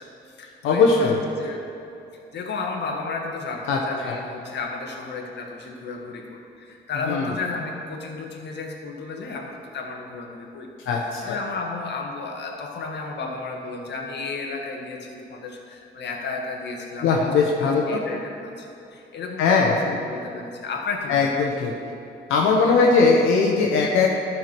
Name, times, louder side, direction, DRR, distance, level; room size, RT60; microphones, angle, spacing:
voice 1, 0.0-1.6 2.1-10.7 11.0-21.3, left 3 dB, 60° left, 1 dB, 1.5 m, -33 dB
voice 2, 0.6-1.2 3.7-3.8 4.0-4.2 7.0-7.2 10.9-11.3 17.0-18.0 19.4-19.7 21.1-21.7 22.3-24.1, left 4 dB, 90° left, -2 dB, 1.0 m, -19 dB
12.5 x 4.6 x 6.0 m, 2.7 s
cardioid pair, 90°, 20 cm